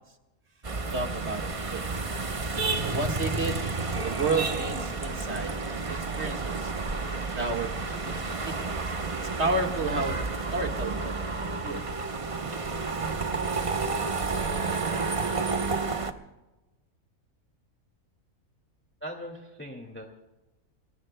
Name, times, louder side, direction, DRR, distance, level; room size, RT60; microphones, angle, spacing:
sound 1, 0.6-16.1, right 3 dB, 30° right, 0.8 m, -31 dB
voice 1, 0.9-2.0 2.8-3.6 4.0-6.7 7.4-8.2 8.4-8.7 9.4-10.2 10.5-11.8, right 3 dB, 50° right, 3 dB, 1.9 m, -31 dB
voice 2, 19.0-20.2, equal, 10° left, 1 dB, 2.0 m, -40 dB
28.5 x 22.0 x 2.2 m, 1.1 s
omnidirectional pair, 1.4 m